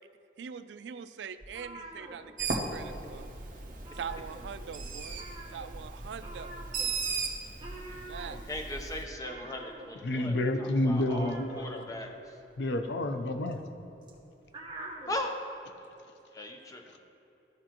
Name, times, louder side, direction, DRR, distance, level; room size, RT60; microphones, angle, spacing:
voice 1, 0.4-3.3 3.9-5.2 5.5-6.6 8.1-8.4, right 7 dB, 85° right, 12 dB, 0.3 m, -42 dB
sound 1, 1.4-2.9 3.1-3.4 3.7-4.8 5.1-15.2, right 2 dB, 25° right, 1.1 m, -47 dB
Bird, 2.4-9.0, right 4 dB, 45° right, 0.9 m, -37 dB
voice 2, 8.3-12.4 15.1-15.4 16.3-17.0, left 1 dB, 20° left, 3 dB, 0.7 m, -39 dB
voice 3, 10.0-11.9 12.6-13.6, left 1 dB, 85° left, 7 dB, 0.6 m, -29 dB
14.0 x 5.0 x 3.0 m, 3.0 s
head